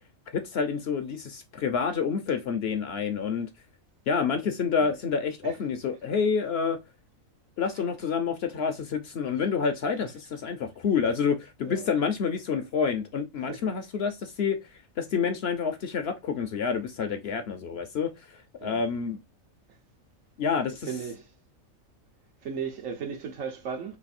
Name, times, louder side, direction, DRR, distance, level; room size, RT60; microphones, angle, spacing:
voice 1, 0.3-3.5 4.1-6.8 7.6-14.6 15.0-18.1 18.6-19.2 20.4-20.9, left 6 dB, 60° left, 0.7 m, -28 dB
voice 2, 20.9-21.3 22.4-24.0, right 6 dB, 75° right, 1.3 m, -36 dB
3.2 x 2.7 x 4.1 m
omnidirectional pair, 1.4 m